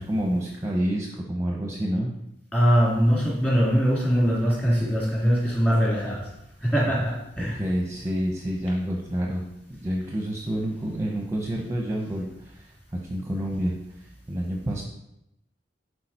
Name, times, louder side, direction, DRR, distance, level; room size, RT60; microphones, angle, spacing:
voice 1, 0.0-2.1 7.4-9.4 9.8-14.8, equal, 15° right, -1 dB, 0.9 m, -28 dB
voice 2, 2.5-6.3 6.6-7.6, equal, 10° left, -6 dB, 3.0 m, -22 dB
11.0 x 4.8 x 4.4 m, 0.85 s
head